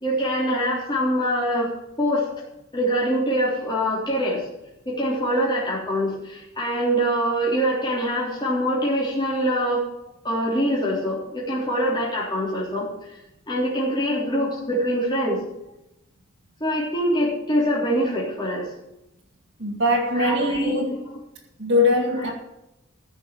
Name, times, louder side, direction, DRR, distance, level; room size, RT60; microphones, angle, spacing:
voice 1, 0.0-1.7 2.0-2.3 2.7-4.4 4.9-9.8 10.2-12.9 13.5-15.4 16.6-18.7 20.1-21.0 22.1-22.3, equal, 20° left, 3.6 m, -24 dB
voice 2, 19.6-20.9 21.6-22.3, left 2 dB, 60° right, 2.1 m, -21 dB
15.0 x 6.5 x 7.6 m
head